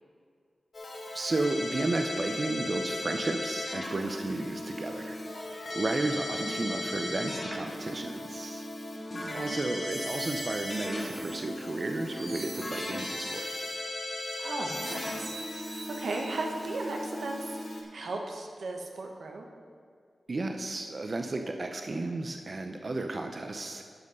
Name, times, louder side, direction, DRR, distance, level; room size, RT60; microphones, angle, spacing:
Keyboard (musical), 0.7-17.8, left 1 dB, 50° left, 1.4 m, -37 dB
voice 1, 1.1-5.2 5.7-8.6 9.3-13.7 20.3-23.8, right 2 dB, 40° right, 5 dB, 0.5 m, -33 dB
voice 2, 9.1-9.6 14.4-19.5, right 2 dB, 85° right, 1 dB, 1.1 m, -37 dB
sound 1, 9.4-16.7, right 2 dB, 70° right, 2.6 m, -45 dB
12.0 x 5.3 x 5.3 m, 2.2 s
wide cardioid pair, 115°, 0 cm